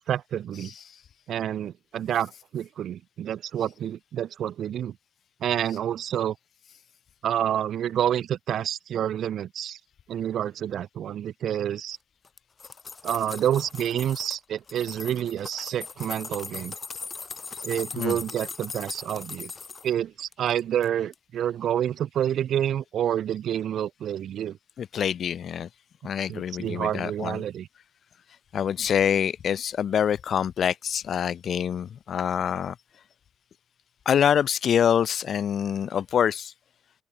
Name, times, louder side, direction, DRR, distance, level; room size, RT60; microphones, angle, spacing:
voice 1, 0.1-0.7 1.3-4.9 5.4-6.4 7.2-9.8 10.1-12.0 13.0-16.7 17.6-19.5 19.8-24.6 26.3-27.7, right 10 dB, 70° right, 0.7 m, -28 dB
sound 1, 12.2-14.4 14.7-19.9 20.3-20.9 21.1-21.2, left 5 dB, 35° left, 1.8 m, -39 dB
voice 2, 24.8-25.7 26.0-27.4 28.5-32.7 34.1-36.5, left 8 dB, 60° left, 0.7 m, -25 dB
open air
cardioid pair, 90°, 0 cm